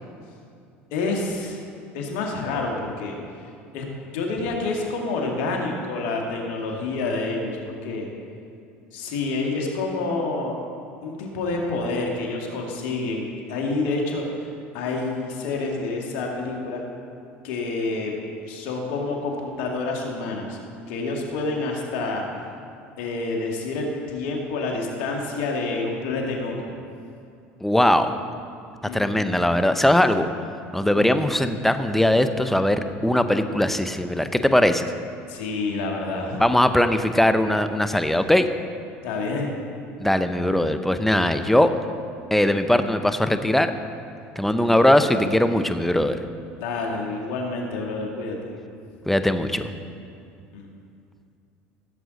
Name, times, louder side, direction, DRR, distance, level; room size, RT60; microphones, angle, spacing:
voice 1, 0.9-1.6 1.9-3.2 3.7-3.8 4.1-8.1 8.9-10.5 11.0-14.3 14.7-16.8 17.4-18.1 18.5-20.6 20.9-22.2 23.0-26.7 28.8-29.2 30.9-31.2 35.3-36.4 39.0-39.5 46.6-48.4 50.5-50.7, left 3 dB, 70° left, 0 dB, 2.0 m, -28 dB
voice 2, 27.6-28.1 28.9-30.3 30.7-34.9 36.4-38.5 40.0-41.7 42.3-43.7 44.4-46.2 49.1-49.7, left 1 dB, 5° left, 9 dB, 0.7 m, -20 dB
16.0 x 7.7 x 4.1 m, 2.5 s
hypercardioid pair, 80°, 6 cm